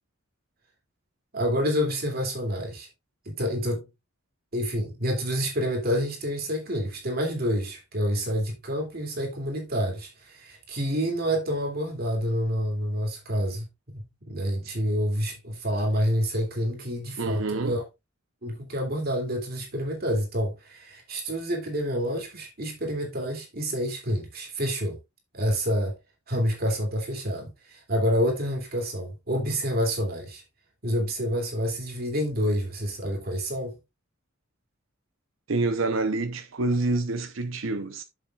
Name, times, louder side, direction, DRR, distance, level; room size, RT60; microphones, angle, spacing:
voice 1, 1.3-2.9 3.2-3.9 4.5-17.8 18.4-25.0 25.3-26.0 26.3-30.4 30.8-33.8, equal, 50° right, 2.8 m, -28 dB
voice 2, 17.2-17.8 35.5-38.0, right 2 dB, 70° right, 0.8 m, -27 dB
10.5 x 7.1 x 2.4 m
head